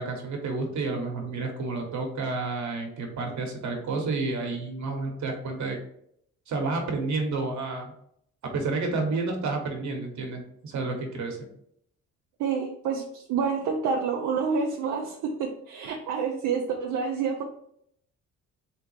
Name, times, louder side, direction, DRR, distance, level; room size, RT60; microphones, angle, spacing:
voice 1, 0.0-5.8 6.5-7.9 8.5-11.4, right 3 dB, 65° right, 2 dB, 1.2 m, -30 dB
voice 2, 12.4-17.4, right 5 dB, 85° right, 0 dB, 0.6 m, -28 dB
3.6 x 3.3 x 3.2 m, 0.70 s
cardioid pair, 90°, 30 cm